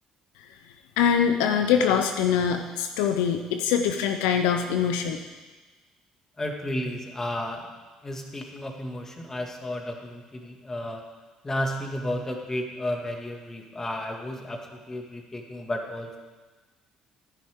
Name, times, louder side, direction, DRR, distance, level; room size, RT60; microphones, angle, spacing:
voice 1, 1.0-5.2, left 7 dB, 85° left, 6 dB, 0.7 m, -23 dB
voice 2, 6.4-7.7 8.0-11.0 11.4-16.2, left 1 dB, 25° left, 2 dB, 2.2 m, -32 dB
14.5 x 10.0 x 3.8 m, 1.3 s
supercardioid pair, 70°, 2 cm